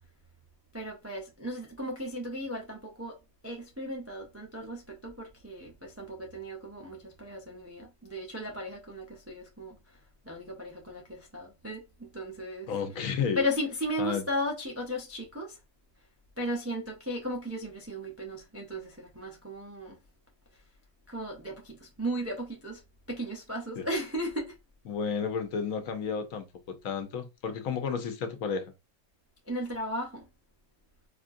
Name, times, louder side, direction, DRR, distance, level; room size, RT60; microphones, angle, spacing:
voice 1, 0.7-3.2 3.4-10.0 10.2-12.7 13.4-15.6 16.4-20.0 21.1-22.8 23.1-24.6 29.5-30.3, equal, 25° right, 0.3 m, -36 dB
voice 2, 12.7-13.4 14.0-14.2 23.8-23.9 24.9-28.7, left 6 dB, 70° left, 1.0 m, -32 dB
4.3 x 2.4 x 2.5 m
omnidirectional pair, 1.5 m